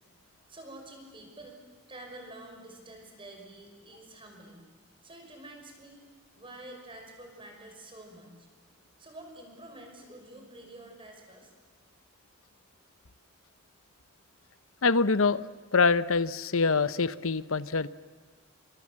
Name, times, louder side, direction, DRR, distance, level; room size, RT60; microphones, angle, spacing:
voice 1, 0.5-1.6 1.9-4.7 5.0-6.0 6.3-8.5 9.0-11.5, right 1 dB, 25° right, 3 dB, 5.9 m, -48 dB
voice 2, 14.8-15.4 15.7-17.9, left 4 dB, 80° left, 15 dB, 0.9 m, -25 dB
30.0 x 25.5 x 7.7 m, 1.4 s
head